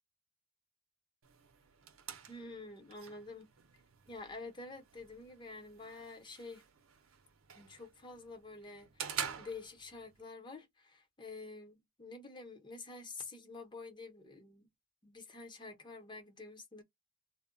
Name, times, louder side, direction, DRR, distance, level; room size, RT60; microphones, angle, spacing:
sound 1, 1.2-10.2, right 7 dB, 85° right, 0.7 m, -48 dB
voice 1, 2.3-3.5 4.1-6.6 7.5-14.7 15.0-16.8, left 3 dB, 25° left, 0.8 m, -48 dB
2.2 x 2.1 x 3.7 m
head